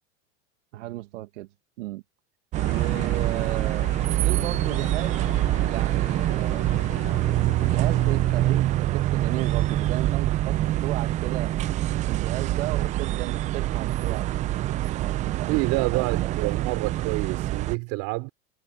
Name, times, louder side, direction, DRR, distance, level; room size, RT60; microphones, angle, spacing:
voice 1, 0.7-1.5 1.8-2.0 2.7-3.9 4.2-5.3 5.6-6.6 7.1-11.5 12.0-14.5 14.9-16.5, right 17 dB, 75° right, 1.7 m, -35 dB
sound 1, 2.5-17.8, right 15 dB, 20° right, 0.4 m, -25 dB
sound 2, 2.6-8.6, left 23 dB, 50° left, 4.4 m, -42 dB
voice 2, 15.5-18.3, right 26 dB, 50° right, 4.2 m, -27 dB
supercardioid pair, 145°, 36 cm